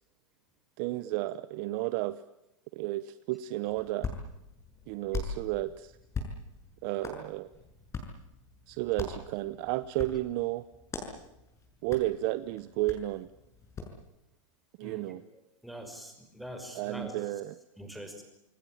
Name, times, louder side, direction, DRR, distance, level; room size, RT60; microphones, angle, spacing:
voice 1, 0.8-2.2 2.7-4.1 4.9-5.9 6.8-7.5 8.7-10.6 11.8-13.3 14.8-15.2 16.7-17.5, right 17 dB, 40° right, 14 dB, 1.0 m, -32 dB
Hands, 3.6-14.0, left 4 dB, 15° left, 6.5 m, -42 dB
voice 2, 14.8-17.4 17.8-18.2, equal, ahead, 4 dB, 5.6 m, -44 dB
27.5 x 20.5 x 8.8 m, 0.87 s
supercardioid pair, 150°, 17 cm